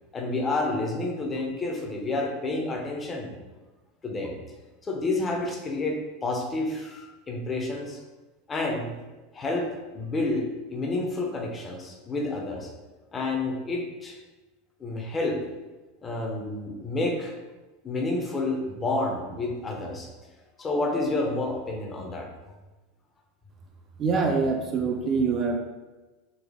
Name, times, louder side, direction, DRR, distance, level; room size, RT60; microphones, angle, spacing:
voice 1, 0.1-3.4 4.0-4.4 4.8-8.0 8.5-8.9 9.3-9.7 9.9-12.7 13.1-14.2 14.8-15.4 16.0-17.4 17.8-20.1 20.6-22.3, left 2 dB, 20° left, 1 dB, 0.6 m, -29 dB
voice 2, 24.0-25.6, right 4 dB, 30° right, 2 dB, 0.4 m, -24 dB
3.9 x 2.7 x 3.5 m, 1.2 s
supercardioid pair, 155°, 0 cm